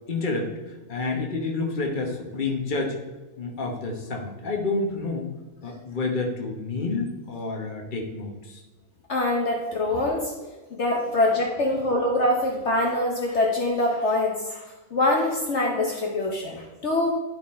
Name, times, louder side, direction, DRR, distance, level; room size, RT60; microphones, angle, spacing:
voice 1, 0.1-0.5 0.9-2.9 3.4-5.3 5.6-8.6, left 3 dB, 40° left, 1 dB, 1.2 m, -29 dB
voice 2, 9.1-10.3 10.7-14.6 14.9-17.1, left 1 dB, 60° left, 0 dB, 1.2 m, -24 dB
11.5 x 3.9 x 4.3 m, 1.2 s
omnidirectional pair, 1.4 m